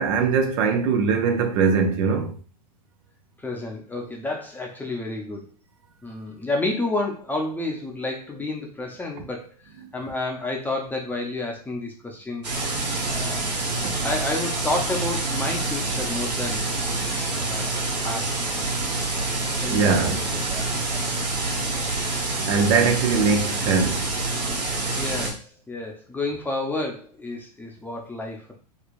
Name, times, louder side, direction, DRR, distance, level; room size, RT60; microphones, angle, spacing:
voice 1, 0.0-2.3 13.8-13.9 19.7-20.2 22.5-24.0, right 5 dB, 50° right, 0.7 m, -21 dB
voice 2, 3.4-5.5 6.0-9.6 9.9-12.8 13.1-13.5 14.0-16.7 17.4-18.5 19.6-21.1 25.0-28.6, left 2 dB, 10° left, 0.8 m, -30 dB
sound 1, 12.4-25.3, right 2 dB, 80° right, 1.2 m, -27 dB
3.3 x 3.2 x 2.5 m
hypercardioid pair, 105°, 21 cm